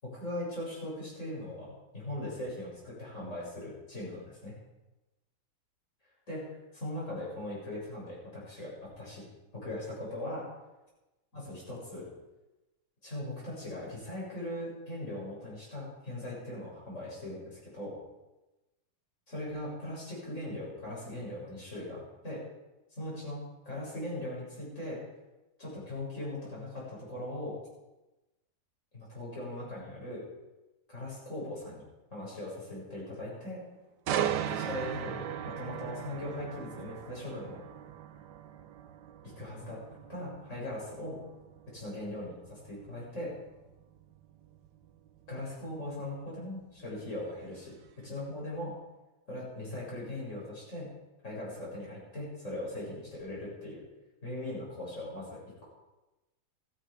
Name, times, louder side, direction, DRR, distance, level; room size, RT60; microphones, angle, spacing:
voice 1, 0.0-4.6 6.3-9.2 9.5-10.5 11.3-12.1 13.0-18.0 19.3-22.4 22.9-25.0 25.6-27.6 28.9-30.2 30.9-31.8 32.1-33.6 34.5-37.6 39.4-41.2 41.7-43.3 45.3-48.8 49.3-50.9 51.2-53.8 54.2-55.6, left 1 dB, 45° left, -6 dB, 7.6 m, -40 dB
sound 1, 34.1-47.9 48.3-48.6, right 9 dB, 90° right, 1.4 m, -39 dB
15.0 x 14.0 x 5.2 m, 1.0 s
omnidirectional pair, 1.8 m